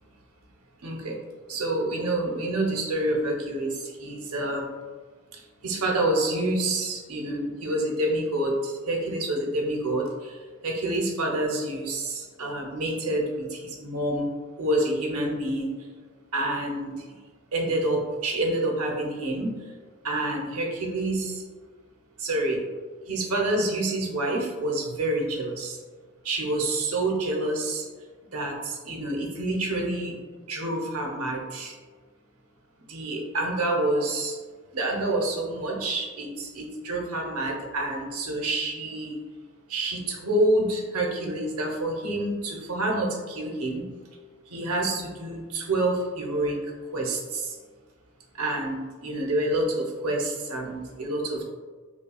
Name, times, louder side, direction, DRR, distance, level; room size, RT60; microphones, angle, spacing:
voice 1, 0.8-1.2 1.5-4.6 5.6-10.3 10.6-14.3 14.6-15.7 16.3-16.9 17.5-19.5 20.0-21.4 22.2-22.6 23.1-25.8 26.2-27.8 28.3-30.1 30.5-31.7 32.9-34.4 34.7-39.2 39.7-43.8 44.5-46.6 46.9-47.5 48.4-51.4, right 1 dB, 85° right, 0 dB, 0.7 m, -27 dB
5.5 x 2.3 x 2.3 m, 1.5 s
head